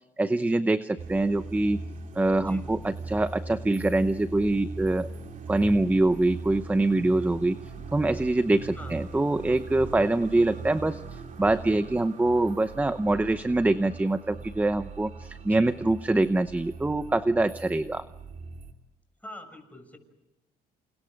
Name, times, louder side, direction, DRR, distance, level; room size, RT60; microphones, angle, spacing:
voice 1, 0.2-1.8 2.1-5.1 5.5-7.6 7.9-18.0, right 2 dB, 10° right, 12 dB, 0.8 m, -24 dB
sound 1, 1.0-18.7, right 3 dB, 50° right, 2.9 m, -40 dB
voice 2, 19.2-20.0, left 1 dB, 10° left, 5 dB, 6.6 m, -44 dB
29.5 x 29.5 x 5.2 m, 0.94 s
cardioid pair, 110°, 17 cm